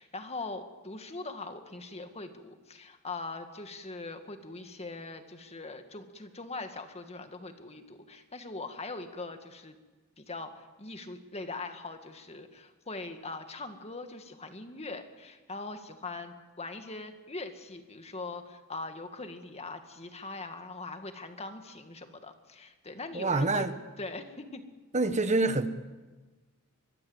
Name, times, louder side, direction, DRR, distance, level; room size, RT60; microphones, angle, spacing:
voice 1, 0.0-9.8 10.2-23.7 24.0-24.6, left 3 dB, 30° left, 2.0 m, -41 dB
voice 2, 23.1-23.7 24.9-25.7, right 3 dB, 35° right, 1.4 m, -26 dB
24.0 x 22.0 x 8.1 m
head